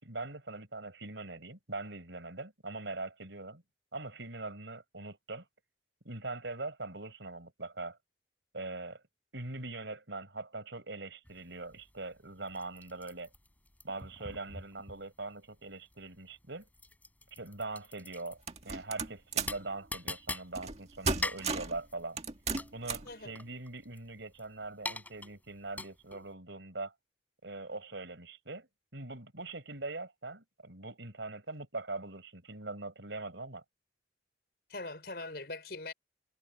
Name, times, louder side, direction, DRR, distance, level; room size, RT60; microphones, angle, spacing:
voice 1, 0.0-3.6 3.9-5.4 6.0-8.0 8.5-9.0 9.3-13.3 13.8-16.7 17.3-22.2 22.7-26.9 27.4-33.6, right 2 dB, 80° right, 5.1 m, -42 dB
sound 1, 11.2-26.3, left 2 dB, 10° left, 4.7 m, -44 dB
sound 2, 18.5-19.6 20.5-20.8 21.0-21.8 22.2-23.1, right 4 dB, 35° right, 1.9 m, -34 dB
voice 2, 34.7-35.9, left 2 dB, 60° left, 5.6 m, -41 dB
head